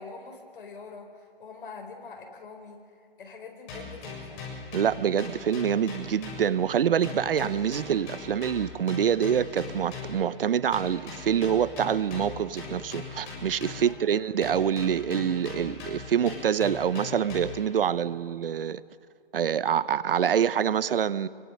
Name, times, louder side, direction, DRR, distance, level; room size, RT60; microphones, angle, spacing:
voice 1, 0.0-4.4 13.8-14.0, left 4 dB, 60° left, 4.6 m, -44 dB
sound 1, 3.7-6.8 7.0-10.3 10.7-14.1 14.4-17.7, left 4 dB, 25° left, 7.3 m, -40 dB
voice 2, 4.7-18.8 19.3-21.3, right 8 dB, 65° right, 0.8 m, -26 dB
27.5 x 24.0 x 6.5 m
hypercardioid pair, 160°, 30 cm